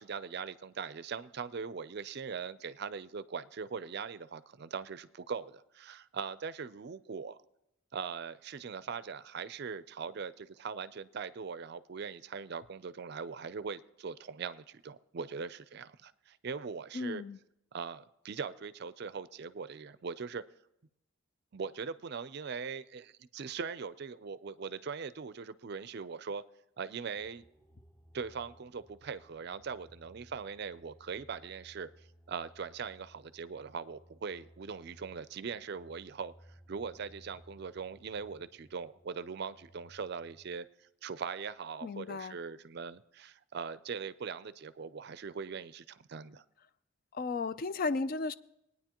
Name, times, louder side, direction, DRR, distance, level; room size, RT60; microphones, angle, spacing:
voice 1, 0.0-7.4 7.9-17.2 17.7-20.4 21.5-26.4 26.8-27.4 28.1-31.9 32.3-36.3 36.7-40.7 41.0-46.4, right 5 dB, 50° right, 15 dB, 0.4 m, -41 dB
voice 2, 16.9-17.4 41.8-42.4 47.1-48.3, left 3 dB, 45° left, 14 dB, 0.3 m, -34 dB
sound 1, 27.2-40.6, right 1 dB, 10° left, 0.7 m, -60 dB
20.5 x 9.6 x 2.9 m, 0.83 s
head